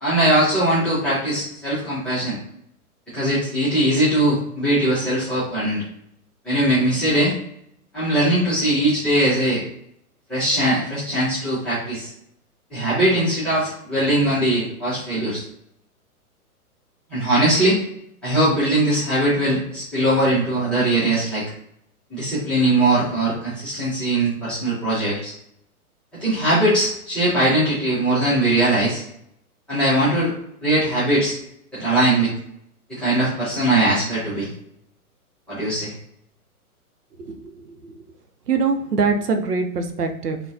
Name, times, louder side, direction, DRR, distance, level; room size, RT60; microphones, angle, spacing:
voice 1, 0.0-2.4 3.1-5.8 6.4-7.4 7.9-9.6 10.3-12.1 12.7-15.4 17.1-17.8 18.2-21.4 22.1-25.3 26.2-29.0 29.7-30.3 30.6-31.3 31.7-32.3 32.9-34.5 35.5-35.9, right 1 dB, ahead, -13 dB, 0.5 m, -20 dB
voice 2, 38.5-40.4, right 4 dB, 85° right, 6 dB, 0.6 m, -22 dB
2.9 x 2.1 x 2.3 m, 0.74 s
figure-of-eight pair, 115°, 45 cm